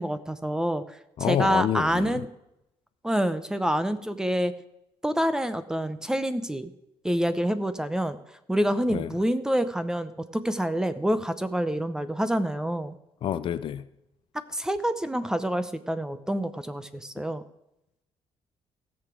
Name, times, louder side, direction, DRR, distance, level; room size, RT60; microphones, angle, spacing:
voice 1, 0.0-2.3 3.0-4.5 5.0-6.7 7.0-8.2 8.5-13.0 14.5-17.4, equal, 5° right, 12 dB, 0.8 m, -27 dB
voice 2, 1.2-2.2 8.9-9.1 13.2-13.9, left 9 dB, 55° left, 14 dB, 0.6 m, -28 dB
16.0 x 7.0 x 6.2 m, 0.84 s
cardioid pair, 135°, 11 cm